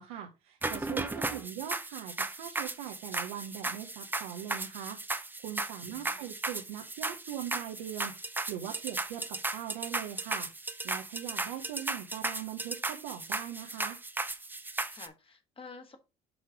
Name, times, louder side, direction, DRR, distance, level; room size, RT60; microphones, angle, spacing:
voice 1, 0.0-10.5 10.8-14.0, right 11 dB, 85° right, 0.9 m, -41 dB
sound 1, 0.6-15.1, right 2 dB, 10° right, 0.7 m, -36 dB
voice 2, 5.9-6.3 14.9-16.0, left 4 dB, 30° left, 1.6 m, -50 dB
6.4 x 3.2 x 4.9 m
supercardioid pair, 80°, 18 cm